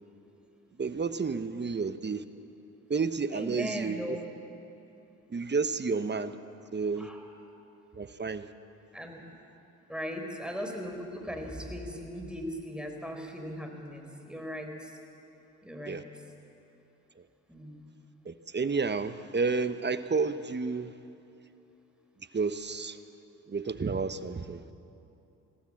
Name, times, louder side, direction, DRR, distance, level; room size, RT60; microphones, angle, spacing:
voice 1, 0.8-2.2 2.9-4.2 5.3-6.3 6.7-7.1 7.9-8.5 15.8-16.0 18.2-20.9 22.3-23.0 23.5-24.6, right 4 dB, 30° right, 12 dB, 1.1 m, -31 dB
voice 2, 3.3-4.2 7.0-7.2 8.9-9.3 9.9-14.9 15.6-16.0 17.5-17.9, equal, 5° right, 3 dB, 4.1 m, -38 dB
21.5 x 16.0 x 7.7 m, 2.9 s
hypercardioid pair, 50°, 35 cm